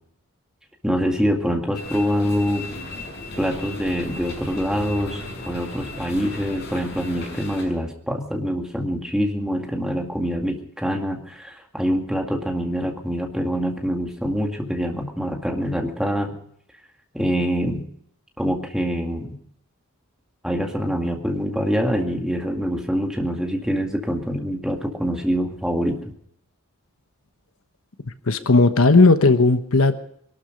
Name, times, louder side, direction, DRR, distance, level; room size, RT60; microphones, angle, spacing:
voice 1, 0.8-2.7 3.4-16.3 17.1-17.9 18.4-19.4 20.4-26.1, equal, 5° right, 2 dB, 2.1 m, -25 dB
sound 1, 1.7-7.7, left 2 dB, 50° left, 6.4 m, -36 dB
voice 2, 28.3-29.9, left 3 dB, 75° left, 10 dB, 1.2 m, -15 dB
22.0 x 12.5 x 5.2 m, 0.67 s
head